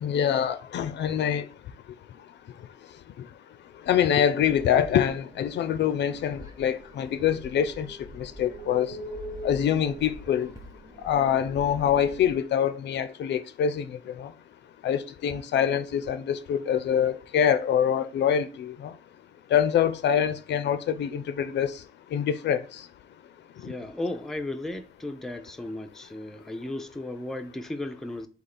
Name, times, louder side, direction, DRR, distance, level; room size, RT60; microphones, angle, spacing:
voice 1, 0.0-1.4 3.9-7.9 8.2-8.9 9.4-10.5 11.0-13.8 14.2-14.3 14.8-18.7 19.5-21.7 22.1-22.6, left 9 dB, 60° left, 0.4 m, -25 dB
sound 1, 4.4-12.4, equal, 15° right, 0.9 m, -43 dB
voice 2, 23.6-28.3, left 1 dB, ahead, 0.4 m, -35 dB
3.9 x 2.8 x 4.2 m
cardioid pair, 90°, 20 cm